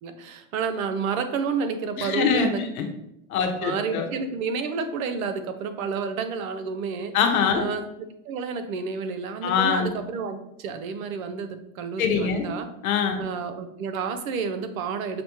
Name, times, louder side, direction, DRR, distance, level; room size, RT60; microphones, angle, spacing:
voice 1, 0.0-2.6 3.6-7.2 7.5-7.8 8.2-12.7 13.2-15.2, right 5 dB, 75° right, 8 dB, 0.7 m, -30 dB
voice 2, 2.0-2.5 2.8-2.9 3.3-4.1 7.1-7.7 9.4-9.9 12.0-12.5 12.8-13.2, left 6 dB, 85° left, 5 dB, 0.8 m, -23 dB
5.9 x 2.1 x 3.0 m, 0.82 s
hypercardioid pair, 95°, 41 cm